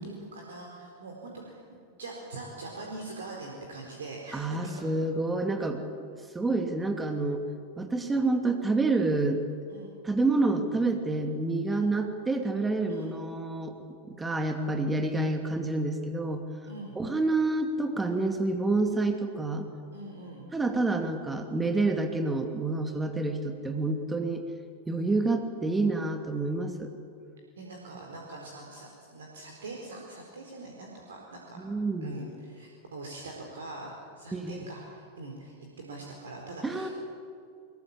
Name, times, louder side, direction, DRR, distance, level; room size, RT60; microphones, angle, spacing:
voice 1, 0.0-1.6 2.0-4.9 9.7-9.9 11.7-11.9 12.9-13.1 15.1-15.3 16.6-17.0 19.9-20.5 27.6-31.6 32.0-36.9, right 2 dB, 65° right, 0 dB, 4.2 m, -43 dB
voice 2, 4.3-5.8 6.3-7.4 7.8-9.4 10.0-13.8 14.1-16.5 17.0-19.7 20.5-24.4 24.9-26.9 31.6-32.2 34.3-34.6 36.6-36.9, right 2 dB, 10° right, 5 dB, 2.5 m, -28 dB
24.0 x 22.0 x 8.7 m, 2.3 s
figure-of-eight pair, 90°, 0 cm